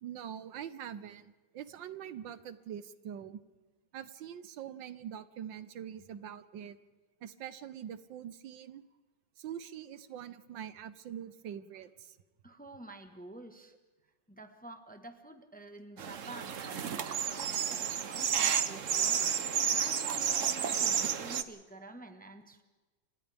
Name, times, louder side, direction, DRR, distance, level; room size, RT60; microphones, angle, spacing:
voice 1, 0.0-3.4 3.9-6.8 7.2-8.8 9.4-12.2, right 9 dB, 80° right, 13 dB, 1.6 m, -44 dB
voice 2, 12.4-13.7 14.3-22.6, right 2 dB, 5° left, 6 dB, 1.1 m, -49 dB
sound 1, 16.0-21.4, right 8 dB, 50° right, 1.1 m, -31 dB
30.0 x 26.0 x 3.5 m, 1.2 s
omnidirectional pair, 2.0 m